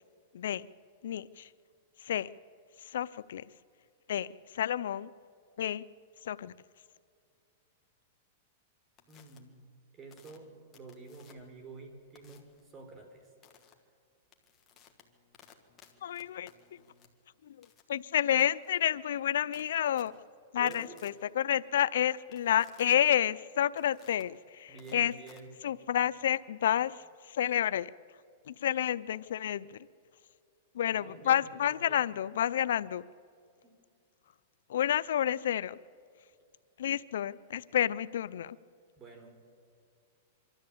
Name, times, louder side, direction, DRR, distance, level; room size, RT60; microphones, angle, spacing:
voice 1, 0.3-0.7 1.0-1.5 2.0-2.3 2.8-3.4 4.1-5.1 5.6-5.8 6.2-6.5 16.0-16.8 17.4-20.1 20.5-25.1 25.6-27.9 28.5-29.8 30.7-33.1 34.7-35.8 36.8-38.6, left 10 dB, 80° left, 17 dB, 0.5 m, -30 dB
sound 1, 9.0-9.4 10.1-11.6 12.2-12.6 13.4-13.7 14.2-26.1, left 7 dB, 20° left, 2.1 m, -60 dB
voice 2, 9.1-9.6 9.9-13.3 20.6-21.0 24.7-25.5 30.8-32.0 33.6-33.7 39.0-39.3, right 3 dB, 25° right, 5 dB, 4.0 m, -49 dB
25.0 x 13.5 x 8.7 m, 2.3 s
supercardioid pair, 145°, 0 cm